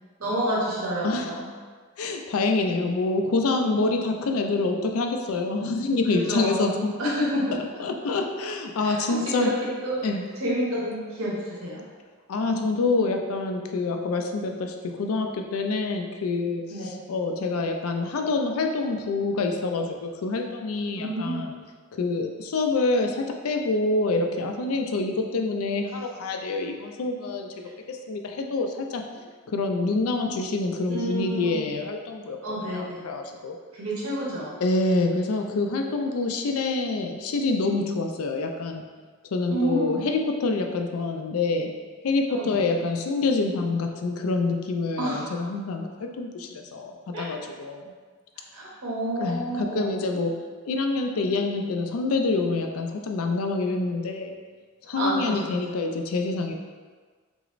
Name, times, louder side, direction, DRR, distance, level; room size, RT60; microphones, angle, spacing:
voice 1, 0.2-1.5 3.6-4.0 6.1-7.5 8.8-9.0 9.4-9.5 9.8-10.0 10.4-11.8 16.7-17.0 21.0-21.5 30.9-31.6 32.4-33.0 33.7-34.5 39.5-40.1 42.3-42.6 45.0-45.2 47.1-47.3 48.5-49.9 55.0-55.5, right 1 dB, 90° right, -6 dB, 1.1 m, -29 dB
voice 2, 2.0-6.9 7.8-9.5 10.0-10.2 12.3-21.5 21.9-29.0 29.5-32.4 32.7-33.6 34.6-38.8 39.3-41.7 42.0-47.8 49.2-50.3 50.7-54.4 54.8-56.5, left 3 dB, 85° left, 4 dB, 0.4 m, -26 dB
6.0 x 2.0 x 2.5 m, 1.5 s
head